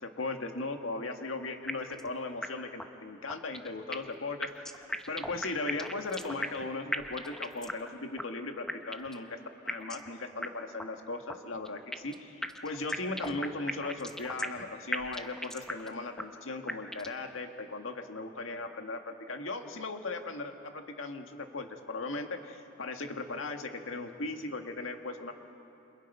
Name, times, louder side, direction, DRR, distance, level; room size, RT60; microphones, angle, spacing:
voice 1, 0.0-9.4 9.6-25.3, left 3 dB, 85° left, 5 dB, 1.7 m, -38 dB
sound 1, 1.7-2.1 2.4-2.5 2.8-2.9 3.3-4.1 4.4-6.6 6.9-7.9 8.2-8.3 8.7-9.2 9.7-10.1 10.4-10.5 10.8-10.9 11.3-12.1 12.4-14.6 14.9-15.9 16.2-16.3 16.7-17.2, equal, 5° left, 0.9 m, -36 dB
28.5 x 26.5 x 5.5 m, 2.9 s
head